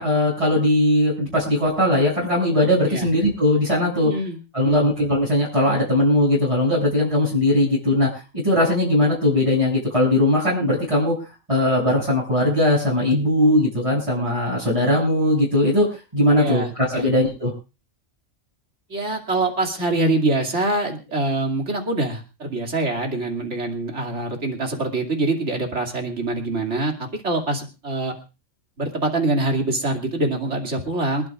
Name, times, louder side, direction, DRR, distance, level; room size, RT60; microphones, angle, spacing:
voice 1, 0.0-4.1 4.5-8.1 8.4-11.2 11.5-15.9 16.1-17.5, left 1 dB, 25° right, -7 dB, 7.0 m, -19 dB
voice 2, 4.0-4.9 16.4-17.1 18.9-28.1 28.8-31.3, right 2 dB, 60° right, 2 dB, 3.0 m, -24 dB
26.5 x 12.5 x 2.5 m, 0.32 s
omnidirectional pair, 1.4 m